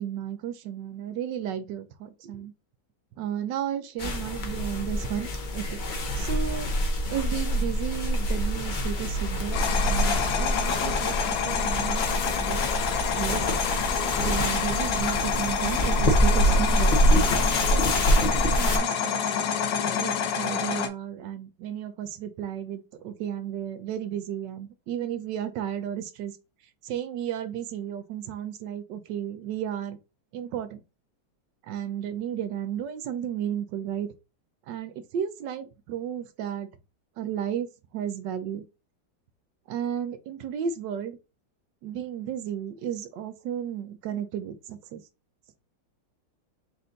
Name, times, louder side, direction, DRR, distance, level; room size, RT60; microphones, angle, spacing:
voice 1, 0.0-2.5 3.2-5.8 6.2-6.7 7.1-12.7 13.2-13.5 14.2-17.0 17.6-19.4 20.0-26.4 26.8-30.0 30.3-30.8 31.7-34.1 34.7-36.7 37.2-38.6 39.7-41.2 41.8-45.0, right 9 dB, 75° right, 1.2 m, -33 dB
sound 1, 4.0-18.8, equal, 60° left, 0.5 m, -26 dB
sound 2, 9.5-20.9, left 7 dB, 80° left, 1.4 m, -28 dB
4.4 x 2.6 x 3.8 m
omnidirectional pair, 2.0 m